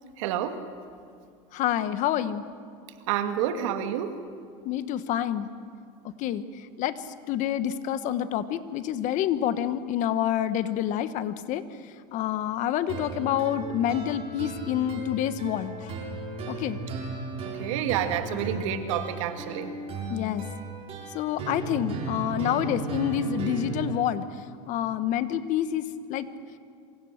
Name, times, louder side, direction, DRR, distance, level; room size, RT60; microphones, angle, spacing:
voice 1, 0.2-0.6 3.1-4.2 17.4-19.7, right 10 dB, 80° right, 7 dB, 2.2 m, -29 dB
voice 2, 1.5-2.4 4.6-5.5 6.2-15.9 16.5-16.8 20.1-20.4 21.1-26.3, left 10 dB, 50° left, 12 dB, 1.3 m, -28 dB
sound 1, 12.9-23.9, right 3 dB, 40° right, 6.8 m, -36 dB
27.0 x 24.5 x 6.6 m, 2.3 s
supercardioid pair, 125°, 16 cm